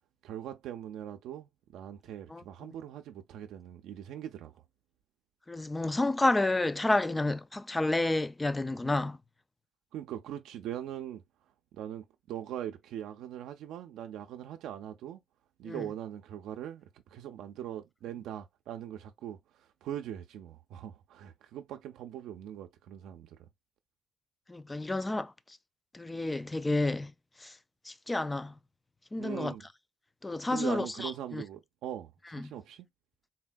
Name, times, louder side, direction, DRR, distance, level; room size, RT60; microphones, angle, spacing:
voice 1, 0.2-4.5 9.9-11.2 11.7-15.2 15.6-23.5 29.2-29.6 30.5-32.9, right 11 dB, 85° right, 0.4 m, -41 dB
voice 2, 5.5-9.2 15.6-15.9 24.5-25.3 25.9-27.1 27.4-27.5 27.9-28.5 29.1-29.5 30.2-31.4 32.3-32.5, left 2 dB, 15° left, 0.3 m, -30 dB
4.0 x 2.1 x 2.3 m
cardioid pair, 90°, 0 cm